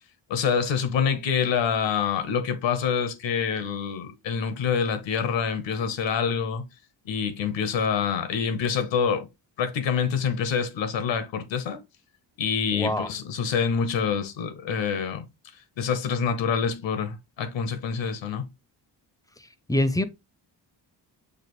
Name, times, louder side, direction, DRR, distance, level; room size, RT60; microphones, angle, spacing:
voice 1, 0.3-6.6 7.1-9.3 9.6-11.8 12.4-15.3 15.8-18.5, left 6 dB, 85° left, 0.9 m, -26 dB
voice 2, 12.7-13.1 19.7-20.0, left 1 dB, 10° left, 0.4 m, -24 dB
6.6 x 2.5 x 3.0 m
cardioid pair, 90°, 43 cm